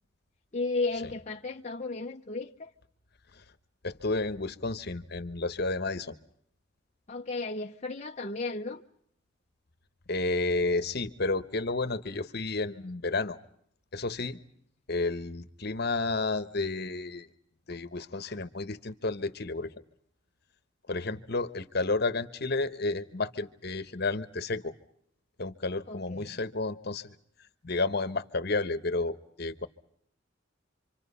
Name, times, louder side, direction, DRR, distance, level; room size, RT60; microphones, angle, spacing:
voice 1, 0.5-2.7 7.1-8.8 25.9-26.3, left 3 dB, 35° left, 0.8 m, -34 dB
voice 2, 3.8-6.1 10.1-13.4 13.9-14.4 14.9-17.3 17.7-19.7 20.9-24.7 25.4-27.1 27.6-29.7, left 3 dB, 55° left, 1.2 m, -31 dB
27.0 x 25.5 x 5.6 m
head